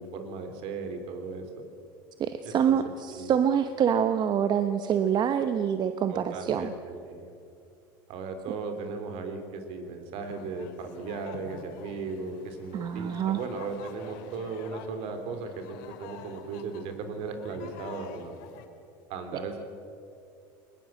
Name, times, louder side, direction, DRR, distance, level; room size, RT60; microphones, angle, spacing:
voice 1, 0.0-1.5 2.4-3.3 6.1-7.3 8.1-18.3 19.1-19.6, right 4 dB, 65° right, 6 dB, 3.5 m, -37 dB
voice 2, 2.2-6.7 12.7-13.4, right 8 dB, 40° right, 9 dB, 1.0 m, -26 dB
sound 1, 10.2-18.7, left 7 dB, 75° left, 2.3 m, -48 dB
21.0 x 20.0 x 7.6 m, 2.5 s
supercardioid pair, 110°, 11 cm